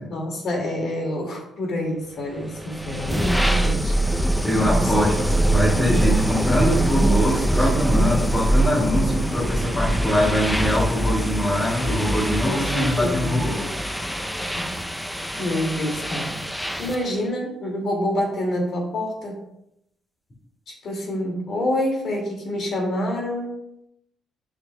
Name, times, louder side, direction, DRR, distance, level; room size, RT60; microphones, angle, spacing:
voice 1, 0.1-3.9 4.6-5.6 7.6-7.7 12.4-13.4 14.4-14.7 15.4-16.3 16.8-19.4 20.7-23.6, left 1 dB, 60° left, 0 dB, 2.2 m, -27 dB
sound 1, 2.5-17.1, right 1 dB, 5° left, 0.5 m, -23 dB
voice 2, 4.4-5.1 5.5-13.7, left 1 dB, 30° left, -6 dB, 2.3 m, -23 dB
7.7 x 6.6 x 2.2 m, 0.80 s
cardioid pair, 90°, 0 cm